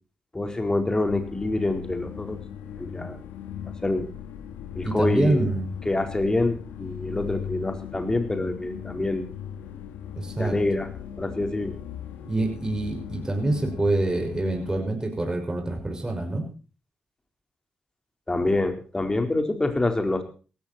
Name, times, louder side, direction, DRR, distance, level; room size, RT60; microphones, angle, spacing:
voice 1, 0.3-2.4 2.8-3.2 3.8-4.1 4.7-5.5 5.8-9.3 10.4-10.9 11.2-11.8 18.3-20.2, left 2 dB, 20° left, 6 dB, 4.4 m, -26 dB
sound 1, 1.1-14.8, left 9 dB, 85° left, 2.5 m, -38 dB
voice 2, 4.8-5.7 10.2-10.6 12.2-16.4, right 2 dB, 20° right, 3 dB, 6.0 m, -26 dB
17.5 x 14.0 x 4.4 m, 0.37 s
supercardioid pair, 50°, 3 cm